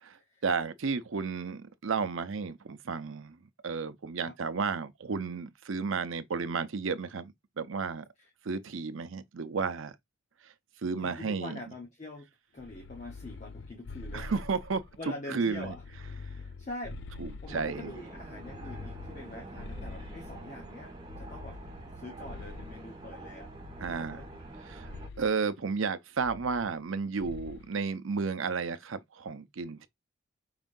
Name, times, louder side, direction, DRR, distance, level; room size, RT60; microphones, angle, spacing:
voice 1, 0.4-3.4 3.6-8.0 8.4-9.9 10.8-11.6 14.1-14.8 15.3-15.7 17.2-17.9 23.8-24.2 24.7-24.9 25.2-29.9, right 5 dB, 80° right, 0.6 m, -32 dB
voice 2, 11.0-14.4 15.0-15.8 16.3-21.6 21.9-23.5 24.1-24.3, left 2 dB, 35° left, 0.9 m, -44 dB
sound 1, 12.6-15.0 15.5-17.9 18.4-20.6 21.1-22.9 23.6-24.5 24.8-25.3 26.2-26.9 27.2-27.7, left 3 dB, 65° left, 0.5 m, -45 dB
sound 2, 17.5-25.1, right 2 dB, 25° right, 1.7 m, -46 dB
4.9 x 3.7 x 2.6 m
head